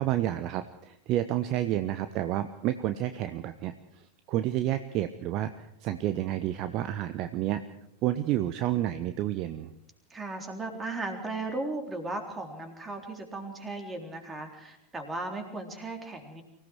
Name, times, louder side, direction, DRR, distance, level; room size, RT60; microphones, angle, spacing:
voice 1, 0.0-3.7 4.3-7.6 8.0-9.7, right 13 dB, 40° right, 11 dB, 0.9 m, -30 dB
voice 2, 10.1-16.4, right 2 dB, 15° right, 4 dB, 3.7 m, -36 dB
24.5 x 17.0 x 6.2 m, 0.78 s
figure-of-eight pair, 90°, 0 cm